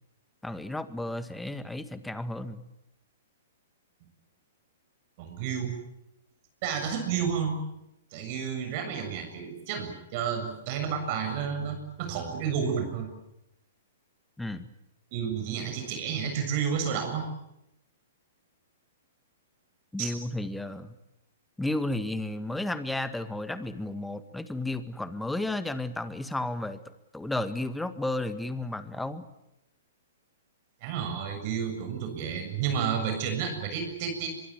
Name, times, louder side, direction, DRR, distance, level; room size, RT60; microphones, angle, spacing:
voice 1, 0.4-2.6 14.4-14.7 19.9-21.0 21.6-26.8 27.1-29.3, left 2 dB, 5° left, 11 dB, 1.9 m, -33 dB
voice 2, 5.2-5.7 6.6-7.6 8.1-13.1 15.1-17.3 20.0-20.1 30.8-34.3, right 7 dB, 45° right, 5 dB, 7.0 m, -31 dB
24.0 x 23.5 x 9.5 m, 0.84 s
hypercardioid pair, 120°, 0 cm